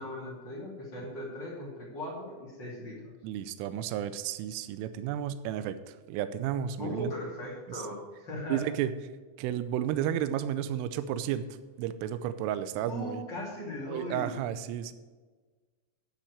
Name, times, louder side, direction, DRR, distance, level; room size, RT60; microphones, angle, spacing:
voice 1, 0.0-3.1 6.8-8.6 12.8-14.3, left 1 dB, 35° left, -4 dB, 2.0 m, -38 dB
voice 2, 3.2-7.1 7.7-7.8 8.5-8.9 9.4-13.2 13.8-14.9, right 10 dB, 85° right, 12 dB, 3.1 m, -32 dB
10.0 x 6.1 x 8.0 m, 1.4 s
omnidirectional pair, 5.9 m